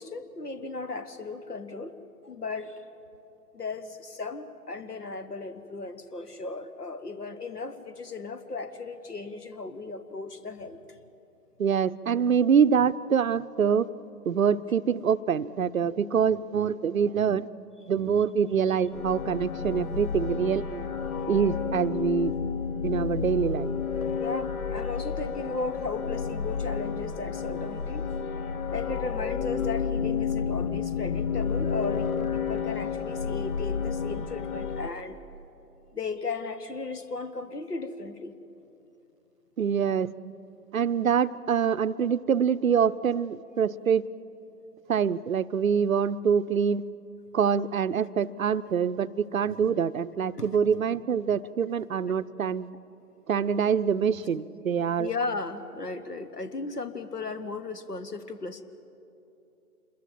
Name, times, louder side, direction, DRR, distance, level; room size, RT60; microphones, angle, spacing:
voice 1, 0.0-2.8 3.5-10.8 24.2-28.0 28.7-35.2 35.9-38.3 50.4-50.6 55.0-58.6, left 3 dB, 80° left, 12 dB, 1.4 m, -36 dB
voice 2, 11.6-13.9 14.3-17.5 17.9-20.8 21.3-22.3 22.8-23.7 39.6-40.1 40.7-44.0 44.9-46.8 47.3-52.7 53.3-55.1, right 7 dB, 60° right, 15 dB, 0.7 m, -25 dB
sound 1, 18.9-34.9, left 6 dB, 65° left, 1.4 m, -31 dB
26.5 x 22.0 x 7.3 m, 2.9 s
figure-of-eight pair, 145°, 46 cm